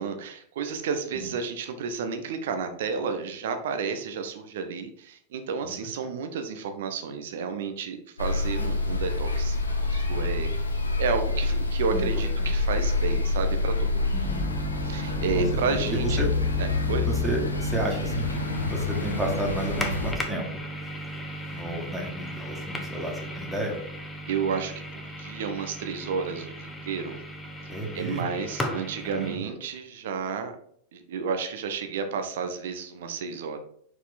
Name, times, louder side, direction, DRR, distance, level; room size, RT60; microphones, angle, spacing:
voice 1, 0.0-10.5 11.0-14.4 14.8-16.2 16.6-17.1 21.5-21.6 24.3-27.2 27.6-30.5 30.9-33.6, right 5 dB, 55° right, 7 dB, 0.9 m, -31 dB
sound 1, 8.2-20.1, left 3 dB, 80° left, 0.8 m, -27 dB
voice 2, 14.1-14.5 15.3-15.4 15.7-16.3 17.1-18.4 18.7-20.5 21.5-23.8 27.7-28.4 29.0-29.4, right 1 dB, 5° right, -1 dB, 1.8 m, -32 dB
sound 2, 14.2-29.4, right 1 dB, 10° left, 1.0 m, -36 dB
5.5 x 4.8 x 4.1 m, 0.66 s
figure-of-eight pair, 90°, 0 cm